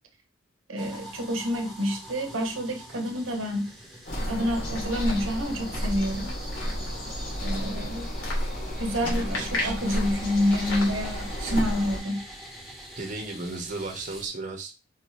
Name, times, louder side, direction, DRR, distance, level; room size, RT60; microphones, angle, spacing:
voice 1, 0.7-3.7 4.2-6.3 7.4-8.2 8.8-12.2, equal, 85° right, 0.9 m, -28 dB
sound 1, 0.8-14.3, right 1 dB, ahead, 0.9 m, -44 dB
sound 2, 4.1-12.0, equal, 85° left, 1.8 m, -31 dB
voice 2, 9.0-9.8 13.0-14.7, right 3 dB, 40° right, 0.9 m, -35 dB
4.5 x 2.7 x 3.0 m
head